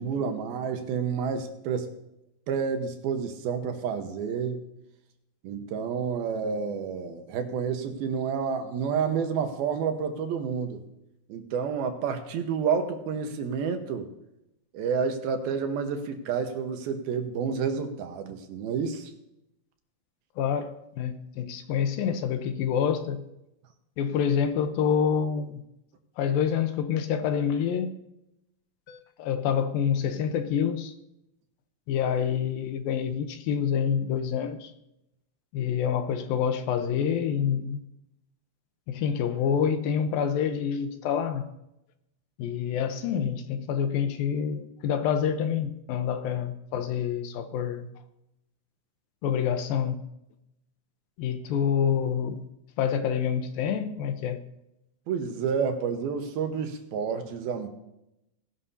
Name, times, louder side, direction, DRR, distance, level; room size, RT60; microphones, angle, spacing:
voice 1, 0.0-1.9 2.5-4.6 5.4-10.8 11.3-14.1 14.7-19.1 55.1-57.7, right 6 dB, 80° right, 3.0 m, -29 dB
voice 2, 20.4-23.3 24.0-25.6 26.2-27.9 28.9-30.9 31.9-34.7 35.5-37.8 38.9-41.5 42.4-47.9 49.2-50.0 51.2-52.4 52.8-54.4, left 8 dB, 80° left, 2.6 m, -27 dB
19.5 x 11.5 x 2.8 m
omnidirectional pair, 4.3 m